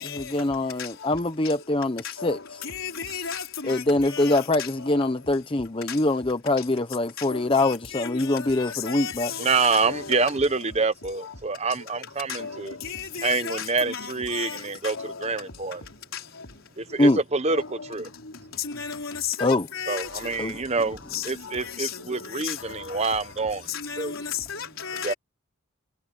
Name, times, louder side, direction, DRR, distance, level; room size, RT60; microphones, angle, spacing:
voice 1, 0.0-2.4 3.7-9.3 17.0-17.2 19.4-19.6 20.4-20.5, left 2 dB, 25° left, 0.8 m, -24 dB
voice 2, 2.6-4.7 5.9-6.0 7.2-7.3 7.5-10.2 12.3-12.5 12.8-15.1 16.1-16.2 17.5-17.6 18.6-20.1 21.1-21.3 21.6-22.0 22.3-22.6 23.7-25.1, left 7 dB, 75° left, 3.7 m, -34 dB
voice 3, 9.4-12.7 13.2-15.8 16.8-18.1 19.9-23.7 24.0-24.1 25.0-25.1, right 4 dB, 30° right, 1.0 m, -26 dB
head